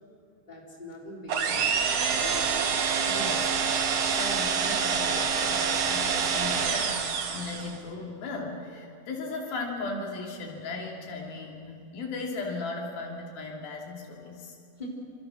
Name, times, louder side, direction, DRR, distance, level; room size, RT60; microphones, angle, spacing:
voice 1, 0.5-1.9 2.2-2.6 14.8-14.9, left 1 dB, 10° left, -2 dB, 4.1 m, -42 dB
sound 1, 1.3-7.8, right 6 dB, 50° right, 2.2 m, -26 dB
voice 2, 3.1-3.4 4.1-14.6, left 3 dB, 85° left, 0 dB, 4.8 m, -37 dB
27.5 x 27.0 x 6.3 m, 2.5 s
omnidirectional pair, 4.1 m